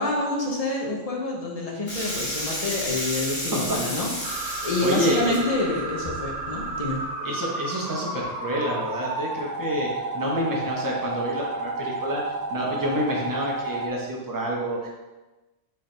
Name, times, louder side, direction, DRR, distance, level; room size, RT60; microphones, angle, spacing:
voice 1, 0.0-7.0, left 2 dB, 35° left, -2 dB, 0.7 m, -27 dB
sound 1, 1.9-7.0, left 1 dB, 70° left, 1.8 m, -33 dB
voice 2, 3.5-4.1 4.8-5.4 7.2-14.9, equal, 20° right, -3 dB, 0.7 m, -28 dB
sound 2, 4.2-13.9, right 2 dB, 80° right, 1.0 m, -32 dB
4.5 x 3.5 x 3.3 m, 1.1 s
omnidirectional pair, 1.2 m